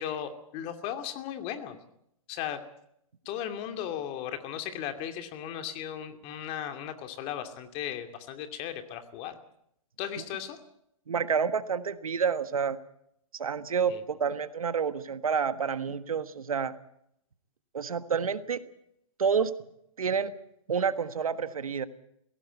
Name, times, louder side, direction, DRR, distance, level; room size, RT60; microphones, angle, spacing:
voice 1, 0.0-1.8 2.3-2.6 3.2-9.4 10.0-10.6 13.9-14.0, left 10 dB, 35° left, 8 dB, 2.6 m, -36 dB
voice 2, 11.1-12.8 13.3-16.7 17.7-18.6 19.2-19.5 20.0-20.3 20.7-21.8, right 6 dB, 80° right, 13 dB, 1.5 m, -29 dB
20.5 x 17.0 x 8.2 m, 0.74 s
hypercardioid pair, 130°, 18 cm